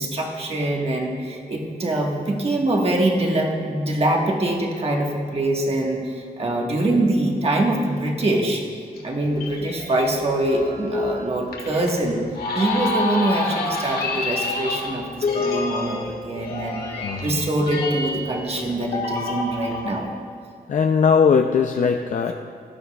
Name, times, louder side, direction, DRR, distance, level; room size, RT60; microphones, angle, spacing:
voice 1, 0.0-8.6 9.0-12.2 12.5-16.8 17.2-20.1, right 1 dB, 40° right, 0 dB, 1.4 m, -24 dB
sound 1, 9.0-20.0, left 3 dB, 80° left, 1.6 m, -28 dB
voice 2, 17.0-17.4 20.7-22.3, left 6 dB, 55° left, 5 dB, 0.4 m, -19 dB
16.5 x 12.0 x 2.3 m, 2.4 s
wide cardioid pair, 160°, 16 cm